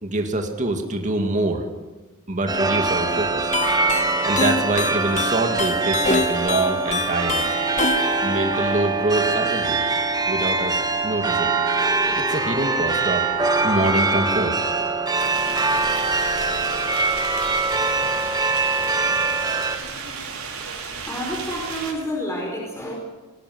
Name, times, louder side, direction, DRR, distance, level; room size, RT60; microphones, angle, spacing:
voice 1, 0.0-1.6 2.3-3.5 4.2-7.5 8.2-9.8 10.3-11.5 12.1-13.3 13.6-14.5, right 2 dB, 35° right, 4 dB, 2.3 m, -25 dB
sound 1, 2.5-19.8, right 3 dB, 20° right, 1.6 m, -23 dB
sound 2, 3.5-9.4, left 4 dB, 35° left, 1.1 m, -27 dB
sound 3, 15.1-21.9, right 5 dB, 80° right, 5.1 m, -33 dB
voice 2, 21.0-22.9, equal, 15° left, -1 dB, 4.6 m, -29 dB
20.5 x 17.5 x 7.9 m, 1.2 s
head